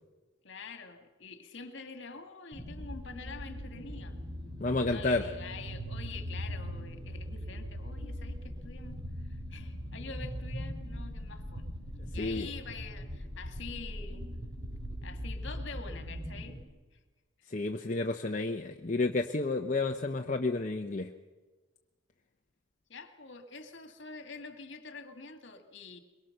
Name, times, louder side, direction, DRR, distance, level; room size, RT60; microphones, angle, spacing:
voice 1, 0.4-4.1 4.7-11.7 12.1-14.3 15.0-16.6 17.4-17.5 22.9-26.0, left 4 dB, 55° left, 7 dB, 2.1 m, -46 dB
sound 1, 2.5-16.6, equal, 20° right, 2.9 m, -40 dB
voice 2, 4.6-5.2 12.2-12.5 17.5-21.1, left 3 dB, 35° left, 3 dB, 0.8 m, -31 dB
23.0 x 22.5 x 6.7 m, 1.3 s
head